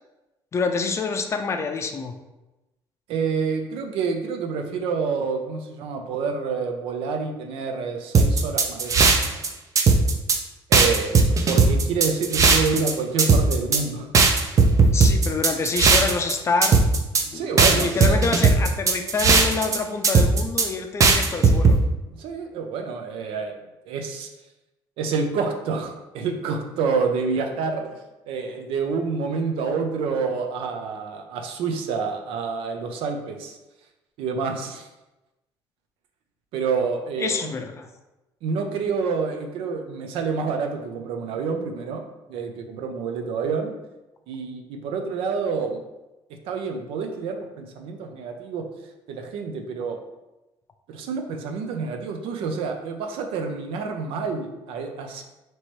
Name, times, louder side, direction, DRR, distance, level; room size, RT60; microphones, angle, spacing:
voice 1, 0.5-2.1 14.9-16.8 17.3-21.8 37.2-37.9, left 4 dB, 30° left, 6 dB, 0.4 m, -27 dB
voice 2, 3.1-9.4 10.7-14.1 14.6-14.7 17.2-18.2 22.1-23.6 23.8-24.3 25.0-28.0 28.3-33.6 34.2-34.9 36.5-37.5 38.4-42.0 42.3-43.7 44.3-45.8 46.5-48.6 49.1-50.0 50.9-55.2, right 5 dB, 85° right, 4 dB, 0.6 m, -28 dB
sound 1, 8.1-9.5 9.8-10.4 10.7-12.9 13.2-13.8 14.1-16.3 16.6-17.2 17.6-19.8 20.0-20.7 21.0-21.8, right 4 dB, 35° right, 0.5 m, -17 dB
3.0 x 3.0 x 4.4 m, 1.0 s
cardioid pair, 125°, 9 cm